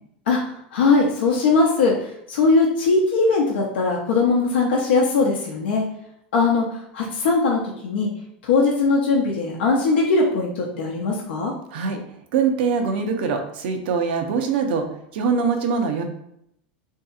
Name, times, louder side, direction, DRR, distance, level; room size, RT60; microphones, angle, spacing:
voice 1, 0.3-5.8 6.3-8.1 8.4-11.5, left 3 dB, 85° left, -2 dB, 0.6 m, -20 dB
voice 2, 12.3-14.9 15.1-16.0, right 5 dB, 75° right, 5 dB, 0.5 m, -23 dB
2.7 x 2.6 x 2.3 m, 0.73 s
hypercardioid pair, 105°, 6 cm